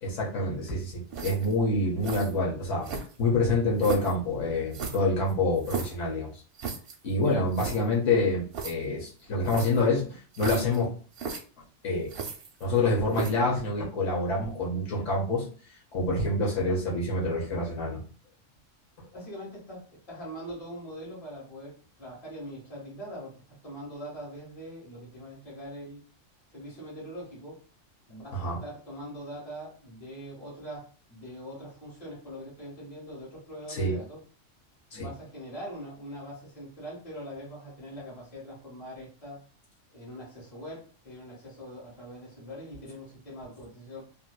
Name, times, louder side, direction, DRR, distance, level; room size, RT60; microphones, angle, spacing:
voice 1, 0.0-2.9 3.2-6.3 7.0-10.9 11.8-12.1 12.6-15.4 15.9-18.0 28.3-28.6 33.7-34.0 34.9-35.1, left 2 dB, 80° left, -3 dB, 1.3 m, -27 dB
sound 1, 1.1-1.6 2.0-2.3 2.8-3.3 3.8-4.2 4.7-6.0 6.6-7.0 7.3-7.4 7.5-7.8 8.5-8.7 9.5-9.8 10.3-10.8 11.1-11.4 12.1-12.8 13.1-13.5, right 5 dB, 60° right, 0.7 m, -35 dB
voice 2, 19.1-26.0 26.5-27.6 28.1-34.2 34.9-39.4 39.9-44.0, equal, 30° left, -7 dB, 1.6 m, -42 dB
3.0 x 2.6 x 2.3 m, 0.39 s
omnidirectional pair, 1.3 m